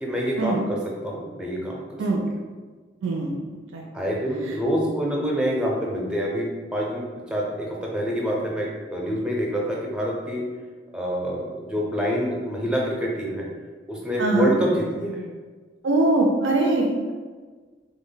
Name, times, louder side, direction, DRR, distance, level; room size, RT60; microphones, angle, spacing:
voice 1, 0.0-2.0 3.9-7.0 7.3-10.4 10.9-13.5 13.9-15.2, equal, 5° right, -3 dB, 0.5 m, -26 dB
voice 2, 3.0-3.8 14.2-14.5 15.8-17.1, right 2 dB, 90° right, -1 dB, 0.4 m, -22 dB
3.3 x 2.1 x 3.8 m, 1.4 s
head